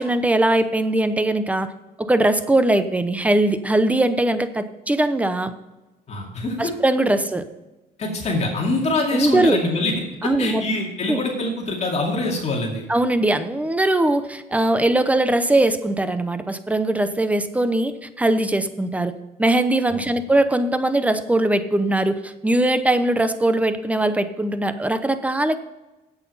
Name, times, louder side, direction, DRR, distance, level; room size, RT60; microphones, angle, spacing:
voice 1, 0.0-1.7 2.0-5.5 6.6-7.4 9.1-9.6 10.2-10.6 11.1-11.2 12.9-19.1 19.4-25.6, right 1 dB, 10° right, 11 dB, 0.8 m, -20 dB
voice 2, 6.1-6.7 8.0-9.9 10.2-12.8 19.9-20.1, left 2 dB, 40° left, -1 dB, 2.3 m, -24 dB
8.3 x 8.2 x 5.5 m, 1.0 s
cardioid pair, 110°, 17 cm